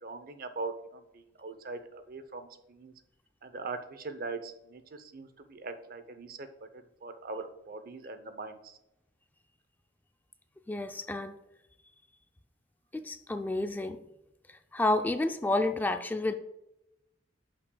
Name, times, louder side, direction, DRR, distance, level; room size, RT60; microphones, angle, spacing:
voice 1, 0.0-2.9 3.4-8.8, right 3 dB, 50° right, 10 dB, 0.7 m, -41 dB
voice 2, 10.7-11.4 12.9-14.0 14.5-16.3, left 2 dB, 10° left, 7 dB, 0.3 m, -30 dB
11.5 x 5.8 x 2.2 m, 0.88 s
head